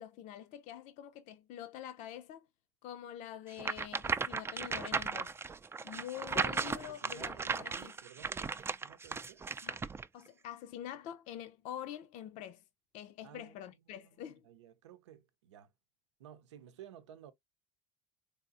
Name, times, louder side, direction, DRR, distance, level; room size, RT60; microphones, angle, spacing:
voice 1, 0.0-2.5 2.8-5.3 5.8-7.9 9.6-9.8 10.1-12.6 12.9-14.4, left 11 dB, 55° left, 0.6 m, -46 dB
sound 1, 3.6-10.1, right 4 dB, 15° right, 0.4 m, -36 dB
voice 2, 6.7-9.4 13.2-13.6 13.9-15.7 16.2-17.3, right 10 dB, 80° right, 0.7 m, -55 dB
4.1 x 3.5 x 2.4 m
hypercardioid pair, 75°, 15 cm